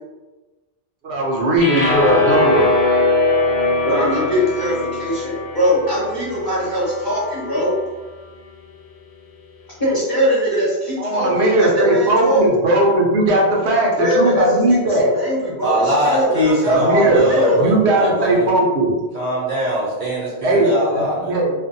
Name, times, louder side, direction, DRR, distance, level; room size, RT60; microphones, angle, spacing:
voice 1, 1.0-2.7 11.0-15.1 16.7-17.3 17.6-19.0 20.4-21.5, right 1 dB, 80° right, -2 dB, 0.9 m, -17 dB
sound 1, 1.6-7.8, left 2 dB, 80° left, 0.8 m, -21 dB
voice 2, 3.8-7.7 9.8-12.4 14.0-17.7, equal, 25° left, -9 dB, 0.8 m, -21 dB
voice 3, 15.6-18.6 19.1-21.4, equal, 50° right, -6 dB, 0.6 m, -21 dB
2.5 x 2.1 x 2.6 m, 1.2 s
omnidirectional pair, 1.1 m